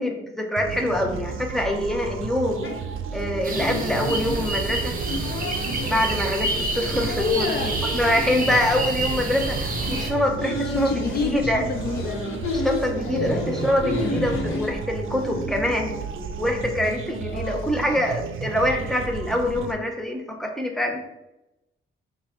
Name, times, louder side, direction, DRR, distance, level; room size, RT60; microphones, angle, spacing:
voice 1, 0.0-2.6 3.1-5.0 5.9-11.7 12.5-16.0 16.4-21.0, left 1 dB, ahead, 1 dB, 0.8 m, -25 dB
sound 1, 0.6-19.7, right 6 dB, 70° right, 0.5 m, -33 dB
sound 2, 2.6-16.1, left 2 dB, 80° left, 1.1 m, -32 dB
sound 3, 3.4-10.1, right 2 dB, 40° right, 0.8 m, -29 dB
voice 2, 7.2-7.7 10.8-12.2 13.1-13.5 17.3-17.8, left 5 dB, 50° left, 4 dB, 0.5 m, -28 dB
5.5 x 2.4 x 3.6 m, 0.93 s
cardioid pair, 75°, 21 cm